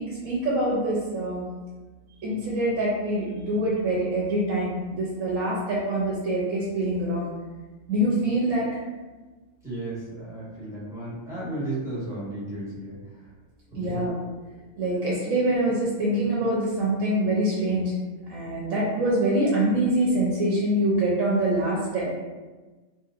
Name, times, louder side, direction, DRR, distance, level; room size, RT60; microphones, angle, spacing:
voice 1, 0.0-1.4 2.2-7.3 7.9-8.7 13.8-14.1 14.8-17.9 18.3-22.1, right 1 dB, 75° right, -5 dB, 1.0 m, -25 dB
voice 2, 9.6-13.0 13.8-14.0, right 1 dB, 5° right, -11 dB, 1.0 m, -34 dB
3.0 x 2.8 x 2.4 m, 1.3 s
omnidirectional pair, 1.4 m